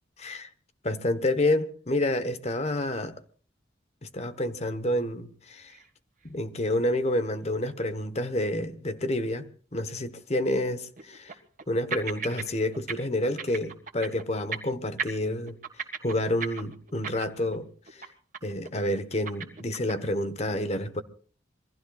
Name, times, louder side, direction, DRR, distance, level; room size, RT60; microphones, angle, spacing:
voice 1, 0.2-0.5 0.8-3.1 4.0-5.8 6.2-9.5 9.7-11.3 11.7-15.6 16.0-17.7 18.4-21.0, left 1 dB, 35° left, 1.1 m, -29 dB
sound 1, 5.7-5.9 6.2-6.3 6.9-7.0 10.2-10.3 11.0-11.7 11.9-12.5 12.7-12.9 13.2-14.2 14.5-14.7 15.0-17.6 17.9-18.1 18.3-18.7 18.9-20.1, right 6 dB, 45° right, 1.7 m, -36 dB
27.5 x 22.0 x 2.4 m
head